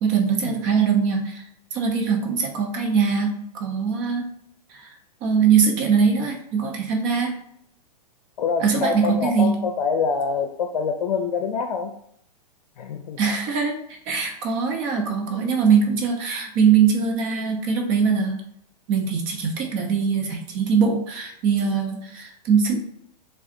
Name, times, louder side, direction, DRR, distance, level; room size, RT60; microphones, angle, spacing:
voice 1, 0.0-4.2 4.7-4.9 5.2-7.4 8.6-9.5 13.2-13.8 14.1-18.4 18.9-22.8, right 6 dB, 35° right, 2 dB, 0.7 m, -22 dB
voice 2, 8.4-11.9 12.8-13.2 15.0-15.5 19.8-19.9, left 5 dB, 80° left, 6 dB, 0.5 m, -26 dB
4.7 x 2.4 x 2.6 m, 0.72 s
hypercardioid pair, 130°, 20 cm